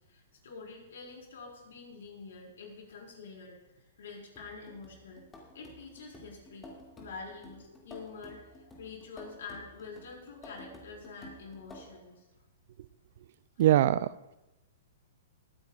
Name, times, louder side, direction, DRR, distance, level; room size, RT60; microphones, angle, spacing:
voice 1, 0.1-5.2 5.5-12.3, left 4 dB, 75° left, -1 dB, 4.5 m, -47 dB
sound 1, 4.4-12.1 13.6-13.7, left 1 dB, 15° left, 2.3 m, -52 dB
voice 2, 13.6-14.4, right 13 dB, 60° right, 18 dB, 0.4 m, -24 dB
21.0 x 9.9 x 2.4 m, 0.99 s
hypercardioid pair, 140°, 0 cm